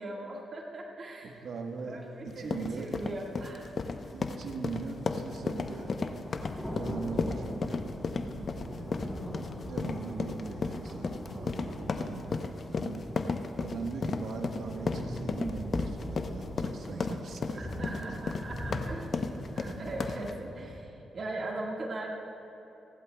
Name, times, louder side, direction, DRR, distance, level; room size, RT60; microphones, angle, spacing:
voice 1, 0.0-1.4 1.8-3.7 8.4-8.5 17.6-19.1 19.4-22.2, right 2 dB, 55° right, -1 dB, 1.7 m, -39 dB
voice 2, 1.2-3.0 4.1-6.2 6.7-7.9 8.5-9.1 9.6-13.1 13.6-17.9, right 4 dB, 75° right, 3 dB, 1.3 m, -40 dB
sound 1, 2.0-2.1 3.0-20.8, left 1 dB, 10° left, 3.4 m, -42 dB
sound 2, 2.3-20.3, left 4 dB, 55° left, 0.7 m, -34 dB
30.0 x 11.5 x 2.3 m, 3.0 s
cardioid pair, 60°, 0 cm